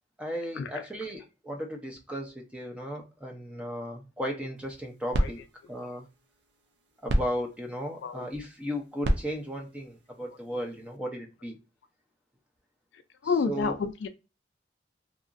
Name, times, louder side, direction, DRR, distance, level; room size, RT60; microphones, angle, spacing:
voice 1, 0.2-5.4 5.7-6.0 7.0-11.6 13.2-13.8, equal, 5° right, 0.5 m, -35 dB
sound 1, 4.6-11.0, equal, 70° right, 0.5 m, -34 dB
voice 2, 13.2-14.1, left 5 dB, 75° left, 0.3 m, -29 dB
2.9 x 2.4 x 2.4 m
head